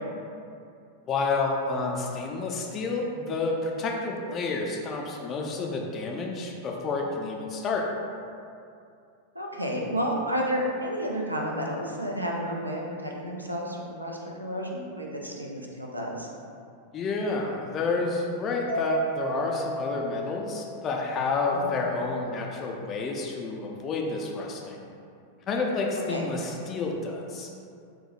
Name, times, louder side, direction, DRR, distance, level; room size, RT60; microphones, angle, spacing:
voice 1, 1.1-7.9 16.9-24.8 25.5-27.5, left 3 dB, 30° left, 0 dB, 0.3 m, -29 dB
voice 2, 9.3-16.3 21.5-21.7 26.1-26.3, equal, 85° right, -1 dB, 0.4 m, -31 dB
Mallet percussion, 18.7-21.1, right 1 dB, 65° left, 0.6 m, -32 dB
4.4 x 2.0 x 2.3 m, 2.5 s
figure-of-eight pair, 90°, 0 cm